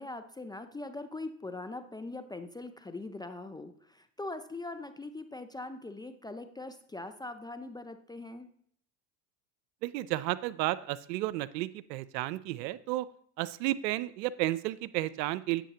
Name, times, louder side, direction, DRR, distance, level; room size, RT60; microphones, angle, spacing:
voice 1, 0.0-8.5, left 2 dB, 10° left, 9 dB, 0.3 m, -41 dB
voice 2, 9.8-13.1 13.4-15.6, right 16 dB, 80° right, 18 dB, 0.6 m, -32 dB
10.0 x 8.1 x 2.8 m, 0.63 s
hypercardioid pair, 90°, 49 cm